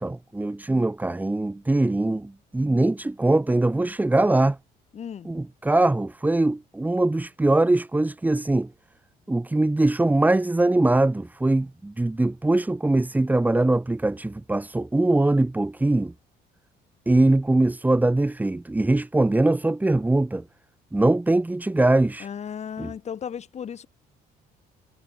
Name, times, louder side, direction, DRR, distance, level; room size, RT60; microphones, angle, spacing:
voice 1, 0.0-4.6 5.2-8.7 9.3-16.1 17.1-20.4 20.9-22.3 22.8-22.9, right 2 dB, 10° right, 1.4 m, -22 dB
voice 2, 4.9-5.3 22.2-23.9, left 8 dB, 40° left, 1.8 m, -35 dB
cardioid pair, 110°, 17 cm